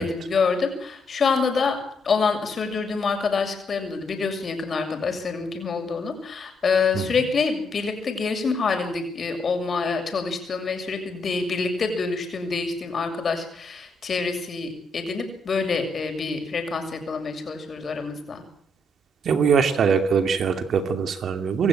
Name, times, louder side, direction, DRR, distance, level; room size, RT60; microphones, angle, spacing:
voice 1, 0.0-1.8 2.0-18.4, left 4 dB, 45° left, 5 dB, 7.1 m, -26 dB
voice 2, 19.2-21.7, right 6 dB, 60° right, 8 dB, 2.7 m, -22 dB
27.5 x 14.5 x 9.0 m, 0.64 s
cardioid pair, 90°, 0 cm